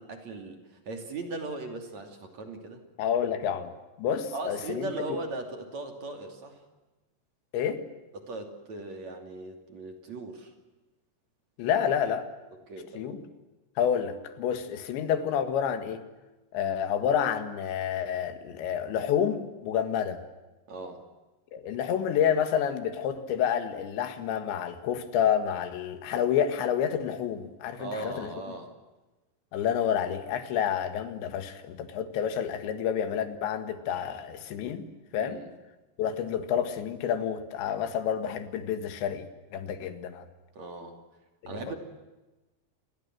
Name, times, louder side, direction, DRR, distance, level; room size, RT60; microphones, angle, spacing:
voice 1, 0.0-2.8 4.3-6.6 8.1-10.5 12.7-13.2 20.7-21.0 27.8-28.7 35.2-35.5 40.6-41.0 41.5-41.8, right 3 dB, 45° right, 5 dB, 3.6 m, -38 dB
voice 2, 3.0-3.7 4.0-5.2 7.5-7.8 11.6-12.3 13.0-13.2 13.8-16.0 16.5-20.2 21.5-28.3 29.5-34.9 35.1-35.4 36.0-40.3 41.4-41.8, left 8 dB, 85° left, 9 dB, 4.0 m, -29 dB
29.0 x 22.5 x 7.7 m, 1.1 s
omnidirectional pair, 5.1 m